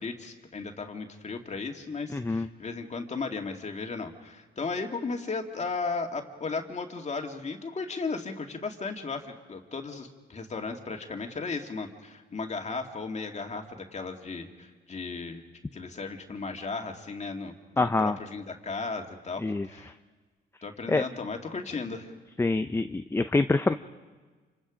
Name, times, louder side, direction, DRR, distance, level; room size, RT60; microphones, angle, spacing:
voice 1, 0.0-15.4 15.7-19.9 20.6-22.1, left 4 dB, 35° left, 3 dB, 2.3 m, -35 dB
voice 2, 2.1-2.5 17.8-18.2 19.4-19.7 20.9-21.0 22.4-23.7, left 3 dB, 15° left, 9 dB, 0.6 m, -25 dB
28.0 x 25.5 x 5.1 m, 1.4 s
cardioid pair, 90°, 20 cm